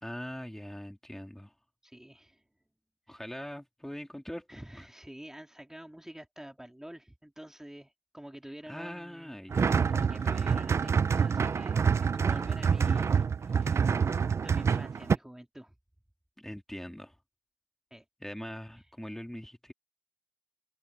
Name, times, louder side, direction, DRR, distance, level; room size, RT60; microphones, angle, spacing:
voice 1, 0.0-1.5 3.1-4.8 8.7-9.9 16.4-17.1 18.2-19.7, equal, 10° left, 3.2 m, -42 dB
voice 2, 1.8-2.4 3.1-3.2 4.5-9.4 9.9-11.8 12.1-13.9 14.4-15.7 17.9-18.0 18.7-18.9, right 1 dB, 10° right, 2.9 m, -48 dB
sound 1, 9.5-15.2, right 6 dB, 80° right, 0.5 m, -26 dB
cardioid pair, 60°, 5 cm